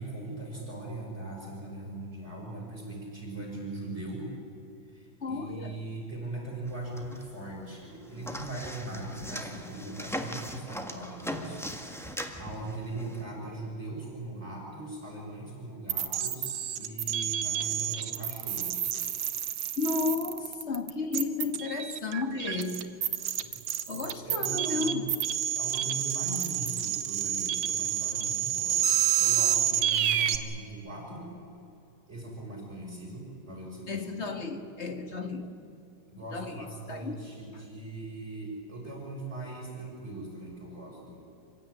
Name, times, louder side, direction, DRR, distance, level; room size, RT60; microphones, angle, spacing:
voice 1, 0.0-4.3 4.9-11.6 12.4-18.9 23.4-23.5 24.2-25.0 25.6-28.9 29.2-31.3 32.1-34.1 36.1-41.2, right 2 dB, 30° right, -3 dB, 6.8 m, -40 dB
voice 2, 5.2-5.8 19.8-23.0 23.9-25.1 33.9-35.5 36.3-37.2, left 4 dB, 35° left, 6 dB, 1.7 m, -33 dB
sound 1, 6.7-7.6 7.8-13.2, equal, ahead, 1.3 m, -39 dB
sound 2, 15.9-30.4, right 10 dB, 70° right, 1.8 m, -29 dB
26.5 x 16.0 x 10.0 m, 2.6 s
omnidirectional pair, 2.3 m